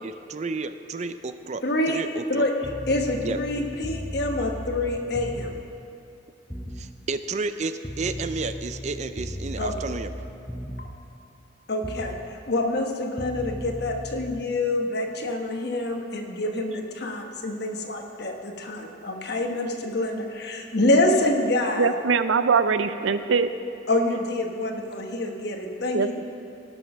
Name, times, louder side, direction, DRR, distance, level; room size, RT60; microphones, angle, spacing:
voice 1, 0.0-2.5 3.2-3.4 6.8-10.1, right 3 dB, 35° right, 10 dB, 0.4 m, -31 dB
voice 2, 1.6-2.0 2.3-2.5 2.9-5.5 9.6-9.7 10.8-10.9 11.7-21.9 23.9-26.2, left 2 dB, 55° left, 3 dB, 1.2 m, -26 dB
sound 1, 2.6-5.7 6.5-6.9 7.8-11.0 11.8-12.2 13.2-14.4, equal, 5° left, 0.6 m, -36 dB
voice 3, 21.8-23.5 25.9-26.2, right 5 dB, 90° right, 11 dB, 0.5 m, -22 dB
17.0 x 6.3 x 6.1 m, 2.7 s
head